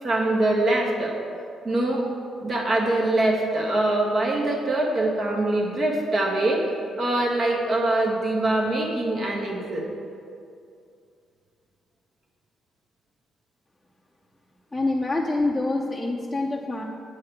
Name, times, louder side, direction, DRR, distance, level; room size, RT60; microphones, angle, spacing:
voice 1, 0.0-1.1 1.6-2.1 2.4-6.6 7.0-9.8, right 2 dB, 45° right, -1 dB, 1.8 m, -23 dB
voice 2, 14.7-16.8, left 2 dB, 10° left, -3 dB, 0.7 m, -26 dB
8.4 x 4.7 x 7.4 m, 2.4 s
cardioid pair, 90°, 0 cm